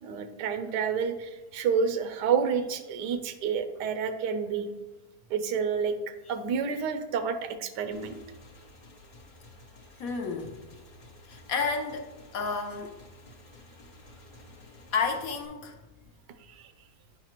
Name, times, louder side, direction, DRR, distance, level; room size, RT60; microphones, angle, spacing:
voice 1, 0.0-4.7 5.3-5.9 6.3-8.1 16.4-16.7, right 6 dB, 85° right, 9 dB, 1.2 m, -29 dB
Motorcycle / Engine, 7.9-15.5, left 2 dB, 45° left, 0.6 m, -52 dB
voice 2, 10.0-10.6 11.3-13.0 14.9-15.8, left 5 dB, 65° left, 3 dB, 1.0 m, -31 dB
9.6 x 4.1 x 3.0 m, 1.1 s
omnidirectional pair, 1.8 m